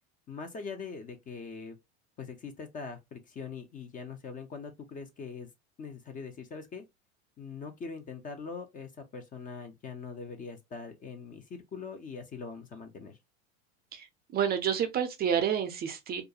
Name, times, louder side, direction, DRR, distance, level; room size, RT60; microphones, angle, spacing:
voice 1, 0.3-1.8 2.2-5.5 5.8-6.8 7.4-13.2, left 5 dB, 25° left, 0.5 m, -42 dB
voice 2, 14.3-16.2, right 8 dB, 30° right, 0.4 m, -29 dB
2.4 x 2.2 x 2.6 m
hypercardioid pair, 90°, 33 cm